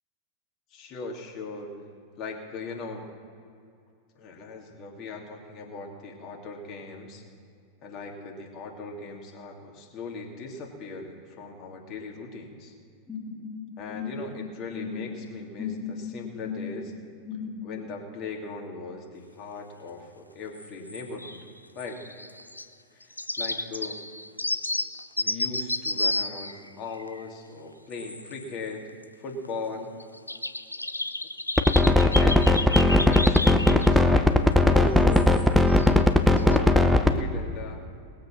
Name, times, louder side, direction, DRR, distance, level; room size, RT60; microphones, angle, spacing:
voice 1, 0.7-1.7 2.2-3.0 4.2-7.2 7.8-12.7 13.8-16.9 17.6-21.4 21.7-22.0 22.9-23.0 23.4-24.0 25.2-28.8 29.2-29.9 32.2-35.3 36.4-37.8, left 3 dB, 35° left, 1 dB, 2.8 m, -38 dB
sound 1, 13.1-17.9, left 6 dB, 15° left, 2.6 m, -37 dB
sound 2, 20.6-21.5 21.8-22.6 23.0-27.2 27.9-28.5 28.9-29.0 29.4-29.5 30.0-34.0 34.7-34.8 35.1-35.9 36.3-36.6, left 2 dB, 85° left, 0.5 m, -32 dB
sound 3, 31.6-37.1, left 2 dB, ahead, 0.9 m, -18 dB
20.0 x 7.7 x 6.1 m, 2.4 s
figure-of-eight pair, 90°, 0 cm